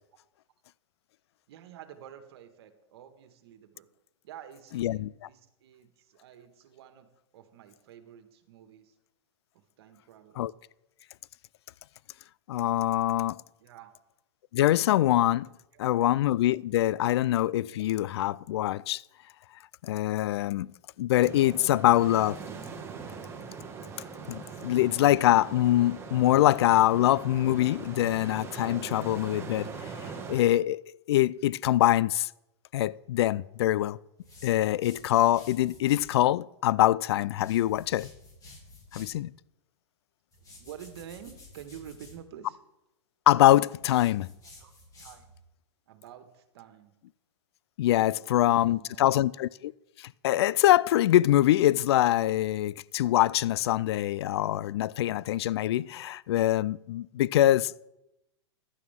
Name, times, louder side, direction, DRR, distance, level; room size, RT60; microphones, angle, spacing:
voice 1, 1.5-3.9 4.2-8.9 9.5-10.4 13.6-13.9 15.7-15.8 40.4-42.6 44.6-44.7 45.0-45.3 45.9-46.9 48.1-49.3, right 9 dB, 60° right, 1.7 m, -49 dB
voice 2, 4.7-5.1 10.4-10.5 12.5-13.4 14.5-15.5 15.8-19.0 19.8-20.7 21.0-22.4 24.3-29.7 30.0-32.3 32.7-34.0 34.4-38.1 38.9-39.3 43.3-44.3 47.8-49.7 50.0-57.9, left 14 dB, 65° left, 0.4 m, -24 dB
sound 1, 21.2-30.4, right 5 dB, 20° right, 1.8 m, -41 dB
sound 2, 34.2-36.2 37.3-39.2 40.3-42.2 43.8-45.4, left 2 dB, 25° left, 3.2 m, -52 dB
15.5 x 11.0 x 3.7 m
hypercardioid pair, 115°, 15 cm